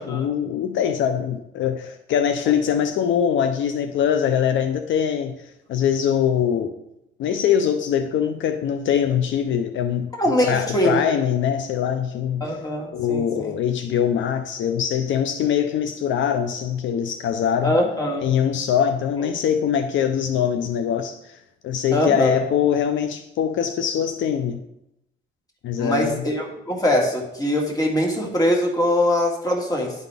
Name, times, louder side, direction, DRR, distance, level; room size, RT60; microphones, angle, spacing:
voice 1, 0.0-6.7 7.2-10.1 10.4-12.5 12.9-17.8 18.2-21.4 21.6-24.6 25.6-26.3, left 8 dB, 70° left, 8 dB, 0.5 m, -23 dB
voice 2, 10.2-11.1 12.4-13.6 17.6-18.2 21.9-22.4 25.8-29.9, left 1 dB, 20° left, 0 dB, 1.9 m, -22 dB
11.0 x 4.1 x 3.4 m, 0.84 s
cardioid pair, 90°, 20 cm